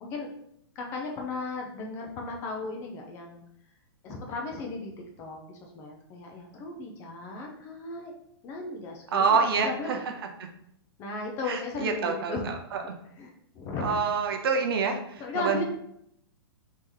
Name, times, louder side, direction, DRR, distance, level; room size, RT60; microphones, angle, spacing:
voice 1, 0.8-3.4 4.0-4.9 5.2-8.1 8.4-10.0 11.0-12.5 13.2-14.0 15.2-15.6, left 3 dB, 20° left, 1 dB, 0.4 m, -36 dB
voice 2, 9.1-10.0 11.4-12.8 13.8-15.6, right 5 dB, 60° right, 4 dB, 0.6 m, -27 dB
3.1 x 2.8 x 3.7 m, 0.74 s
hypercardioid pair, 160°, 14 cm